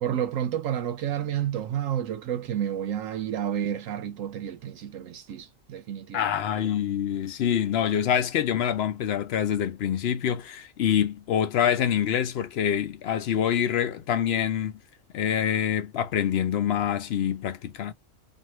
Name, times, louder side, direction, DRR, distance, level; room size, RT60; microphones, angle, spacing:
voice 1, 0.0-6.3, right 10 dB, 80° right, 1.0 m, -30 dB
voice 2, 6.1-14.7 15.1-17.9, left 9 dB, 60° left, 0.7 m, -26 dB
2.7 x 2.4 x 3.0 m
omnidirectional pair, 1.4 m